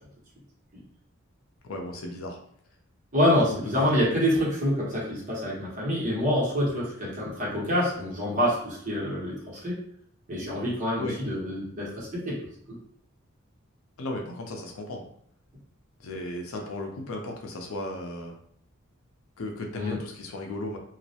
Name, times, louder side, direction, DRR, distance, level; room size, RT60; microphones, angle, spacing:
voice 1, 1.6-2.4 3.5-3.9 11.0-11.2 14.0-15.0 16.0-18.4 19.4-20.8, left 1 dB, 85° left, 2 dB, 0.5 m, -35 dB
voice 2, 3.1-9.3 9.6-9.8 10.3-12.4 19.8-20.0, equal, 40° right, -6 dB, 0.9 m, -26 dB
2.3 x 2.0 x 2.7 m, 0.63 s
head